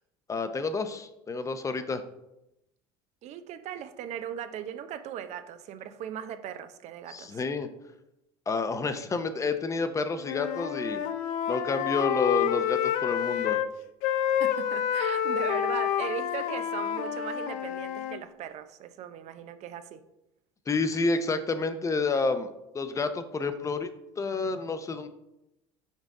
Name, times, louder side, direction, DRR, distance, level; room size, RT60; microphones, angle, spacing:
voice 1, 0.3-2.0 7.1-7.7 8.5-11.0 11.5-13.6 20.7-23.9 24.2-25.1, left 3 dB, 25° left, 10 dB, 0.6 m, -29 dB
voice 2, 3.2-7.4 14.4-20.0, right 9 dB, 60° right, 11 dB, 0.6 m, -38 dB
Wind instrument woodwind instrument, 10.2-13.7 14.0-18.2, left 10 dB, 70° left, 0.5 m, -28 dB
5.4 x 5.0 x 3.6 m, 0.88 s
supercardioid pair, 95°, 13 cm